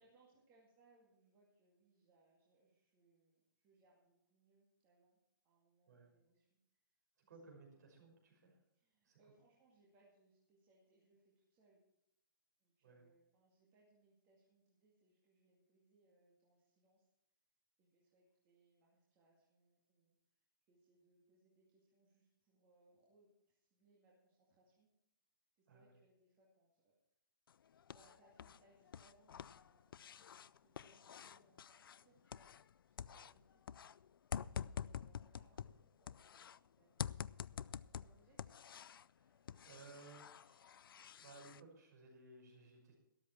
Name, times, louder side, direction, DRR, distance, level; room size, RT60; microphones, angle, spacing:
voice 1, 0.0-5.2 5.4-6.5 6.9-7.0 7.6-7.8 8.7-11.8 12.6-17.1 17.8-20.2 20.7-24.9 25.6-26.9 27.9-32.5 32.8-33.6 34.2-34.3 34.7-38.6, right 2 dB, 20° right, -4 dB, 2.2 m, -74 dB
voice 2, 7.3-8.6 9.0-9.2 12.8-13.0 25.7-25.9 33.1-33.3 35.6-35.7 39.2-40.6 41.2-43.0, right 3 dB, 50° right, 1 dB, 5.9 m, -60 dB
sound 1, 27.5-28.6 28.9-32.7 33.0-36.6 37.0-39.1 39.5-41.6, left 8 dB, 85° left, 0.4 m, -48 dB
13.0 x 12.5 x 4.5 m, 0.81 s
hypercardioid pair, 170°, 11 cm